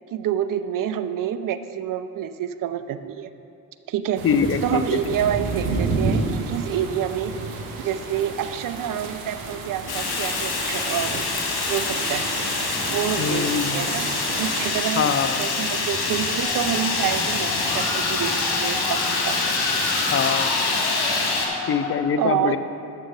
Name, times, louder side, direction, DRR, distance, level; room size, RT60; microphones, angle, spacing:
voice 1, 0.1-3.3 3.9-4.3 4.6-7.3 7.8-11.2 11.7-12.3 12.9-14.1 14.4-15.1 15.4-18.3 18.6-19.4 22.2-22.6, right 10 dB, 50° right, 11 dB, 0.6 m, -27 dB
voice 2, 4.2-4.8 13.2-13.9 15.0-15.4 20.1-20.5 21.7-22.6, left 6 dB, 30° left, 11 dB, 0.6 m, -23 dB
sound 1, 4.2-14.7, right 3 dB, 85° right, 0.8 m, -30 dB
Fire, 9.9-21.5, left 3 dB, 60° left, 1.6 m, -25 dB
Musical instrument, 16.4-22.0, left 3 dB, 85° left, 1.3 m, -32 dB
7.3 x 6.6 x 5.9 m, 2.7 s
hypercardioid pair, 45°, 43 cm